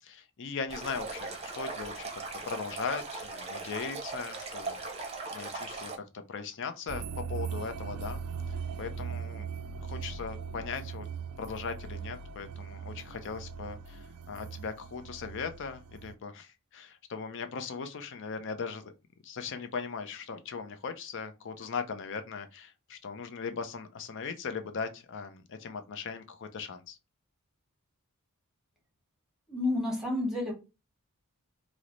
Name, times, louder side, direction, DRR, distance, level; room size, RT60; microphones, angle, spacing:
voice 1, 0.0-5.1 5.3-8.2 8.8-9.5 9.8-11.1 11.4-18.9 19.2-27.0, left 5 dB, 55° left, 0.5 m, -39 dB
Stream, 0.7-6.0, right 3 dB, 30° right, 0.6 m, -39 dB
sound 1, 6.9-16.1, right 6 dB, 75° right, 0.3 m, -39 dB
voice 2, 29.5-30.5, left 2 dB, ahead, 1.0 m, -30 dB
3.1 x 2.0 x 3.7 m
head